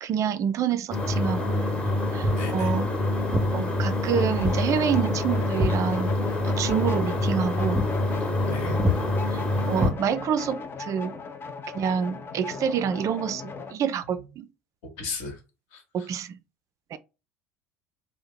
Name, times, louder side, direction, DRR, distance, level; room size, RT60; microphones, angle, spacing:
voice 1, 0.0-1.7 2.1-2.9 3.5-6.1 6.4-7.8 9.2-11.2 11.7-14.5 15.9-16.4 16.9-17.0, right 8 dB, 45° right, 0.4 m, -27 dB
sound 1, 0.9-9.9, left 1 dB, 15° left, 0.9 m, -26 dB
Walk footsteps, 2.2-2.5 3.3-3.5 4.4-4.6 4.9-6.4 6.7-6.9 7.3-7.4 7.7-8.0 8.3-8.5 8.8-9.0 9.8-10.5, equal, 15° right, 0.7 m, -27 dB
voice 2, 2.4-2.8 8.5-8.8 15.0-15.4 15.7-16.1, left 2 dB, 65° left, 1.1 m, -35 dB
sound 2, 4.1-13.8, left 5 dB, 30° left, 0.5 m, -38 dB
2.8 x 2.0 x 3.7 m
hypercardioid pair, 65°, 8 cm